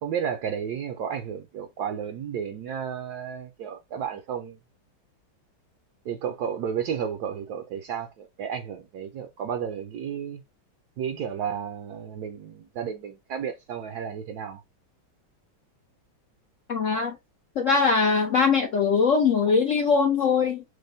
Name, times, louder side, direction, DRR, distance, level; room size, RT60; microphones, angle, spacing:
voice 1, 0.0-4.6 6.0-10.4 11.0-14.6, right 8 dB, 70° right, 1.0 m, -32 dB
voice 2, 16.7-17.2 17.6-20.6, left 5 dB, 80° left, 0.6 m, -21 dB
6.3 x 2.2 x 2.6 m
omnidirectional pair, 2.2 m